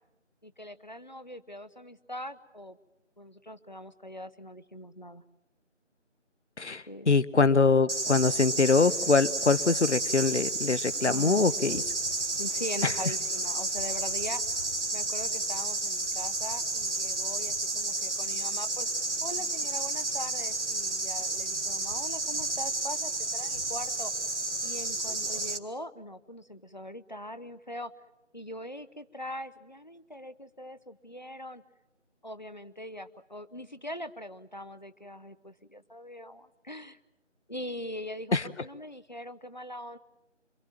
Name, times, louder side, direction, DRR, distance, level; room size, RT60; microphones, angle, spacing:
voice 1, 0.4-2.8 3.2-5.2 6.9-7.1 11.0-11.8 12.4-14.4 14.9-18.9 19.2-24.1 24.6-27.9 28.3-31.6 32.2-37.0 37.5-40.0, left 1 dB, 40° left, 13 dB, 0.8 m, -41 dB
voice 2, 6.6-11.8 12.8-12.9 38.3-38.4, left 4 dB, 70° left, 16 dB, 1.0 m, -24 dB
sound 1, 7.9-25.6, right 2 dB, 70° right, 1.6 m, -31 dB
27.0 x 24.0 x 7.5 m, 0.97 s
figure-of-eight pair, 175°, 37 cm